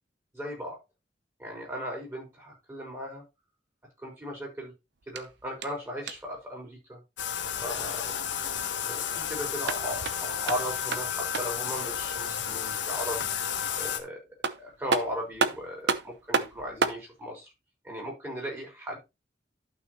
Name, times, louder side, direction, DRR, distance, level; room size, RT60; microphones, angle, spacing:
voice 1, 0.3-0.8 1.4-3.2 4.0-4.7 5.1-7.0 7.6-8.1 8.9-13.3 13.7-14.2 14.6-17.5 17.8-19.0, equal, 15° right, 0 dB, 4.8 m, -37 dB
sound 1, 5.0-6.4 9.4-11.7 14.0-14.1 14.4-17.1, right 4 dB, 70° right, 0.8 m, -31 dB
Bathtub (filling or washing), 7.2-14.0, left 8 dB, 85° left, 1.3 m, -32 dB
11.5 x 6.0 x 3.2 m, 0.24 s
head